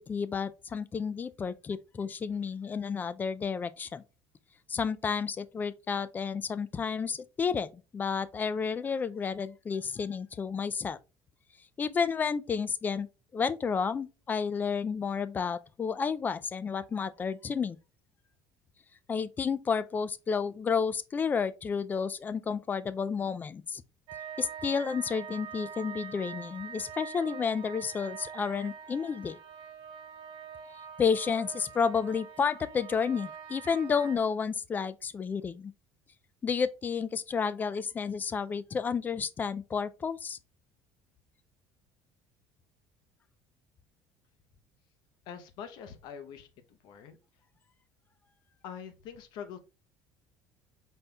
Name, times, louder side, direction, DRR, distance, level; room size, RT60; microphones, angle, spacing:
voice 1, 0.0-4.0 4.7-11.0 11.8-17.8 19.1-23.8 24.4-29.4 31.0-35.7 36.4-40.4, left 6 dB, 25° left, 0.3 m, -31 dB
sound 1, 24.1-34.2, right 8 dB, 65° right, 1.1 m, -44 dB
voice 2, 45.3-47.2 48.6-49.6, left 7 dB, 65° left, 0.8 m, -44 dB
5.2 x 4.2 x 2.3 m
cardioid pair, 130°, 8 cm